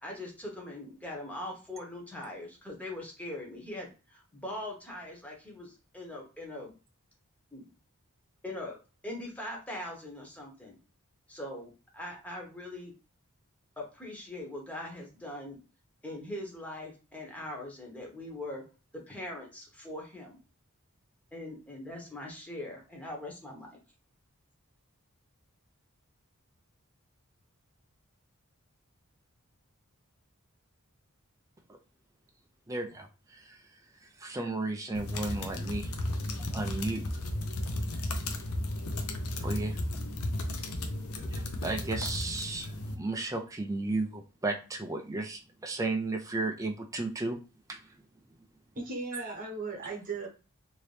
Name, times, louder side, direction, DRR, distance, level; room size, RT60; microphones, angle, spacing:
voice 1, 0.0-6.7 7.5-7.7 8.4-8.8 9.0-10.8 11.3-12.9 13.8-15.6 16.0-18.6 18.9-20.4 21.3-23.8, left 1 dB, 5° left, -1 dB, 0.9 m, -41 dB
voice 2, 32.7-33.6 34.2-35.9 36.5-37.0 39.4-39.8 41.2-42.7 43.0-47.4 47.7-47.8, right 2 dB, 15° right, 3 dB, 0.4 m, -34 dB
sound 1, 34.9-42.9, left 1 dB, 75° left, 0.6 m, -34 dB
voice 3, 48.7-50.3, right 3 dB, 40° right, 1 dB, 1.1 m, -37 dB
2.9 x 2.7 x 3.2 m, 0.33 s
head